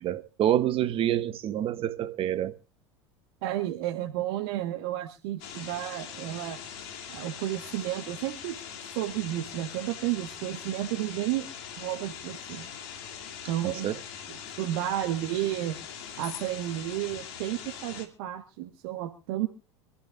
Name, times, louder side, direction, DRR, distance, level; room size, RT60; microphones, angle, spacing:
voice 1, 0.0-2.6 13.6-14.0, right 11 dB, 40° right, 1.2 m, -27 dB
voice 2, 3.4-6.6 7.1-8.6 8.9-11.5 11.8-12.7 13.5-13.9 14.3-15.8 16.2-19.5, right 14 dB, 60° right, 1.5 m, -32 dB
sound 1, 5.4-18.0, left 8 dB, 60° left, 2.8 m, -42 dB
26.0 x 14.0 x 2.5 m
figure-of-eight pair, 80°, 15 cm